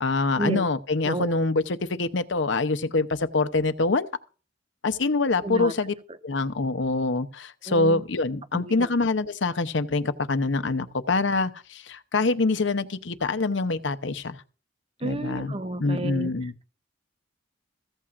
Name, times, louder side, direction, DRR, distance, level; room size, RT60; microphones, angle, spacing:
voice 1, 0.0-4.1 4.8-5.9 6.2-14.4 15.0-15.5 15.8-16.5, left 3 dB, 70° left, 0.8 m, -25 dB
voice 2, 5.4-5.7 7.7-8.0 8.5-8.9 15.0-16.6, right 2 dB, 30° right, 0.8 m, -31 dB
15.0 x 14.5 x 2.5 m
head